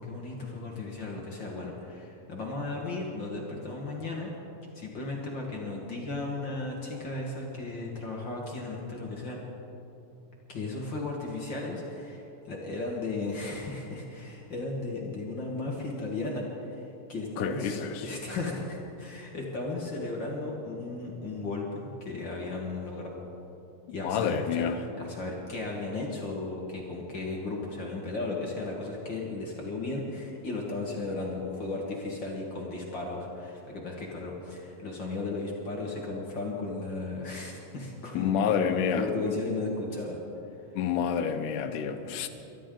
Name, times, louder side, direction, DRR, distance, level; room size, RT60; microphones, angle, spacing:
voice 1, 0.0-4.3 4.7-9.4 10.5-23.3 23.9-24.7 25.0-38.3 38.6-40.2, left 2 dB, 45° left, -2 dB, 1.7 m, -35 dB
voice 2, 17.4-18.0 24.0-24.8 38.1-39.3 40.7-42.3, left 7 dB, 75° left, 8 dB, 2.3 m, -28 dB
23.5 x 12.0 x 3.8 m, 2.9 s
omnidirectional pair, 3.8 m